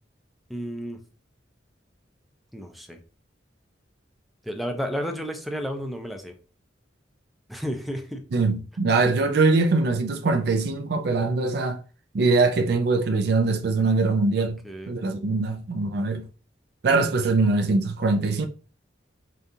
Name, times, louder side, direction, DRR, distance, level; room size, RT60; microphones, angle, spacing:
voice 1, 0.5-1.0 2.5-3.0 4.5-6.3 7.5-8.2 14.6-15.0, equal, ahead, 0.5 m, -32 dB
voice 2, 8.3-11.8 12.1-14.6 14.9-16.2 16.8-18.5, right 3 dB, 60° right, 0.4 m, -22 dB
5.0 x 2.4 x 2.7 m
head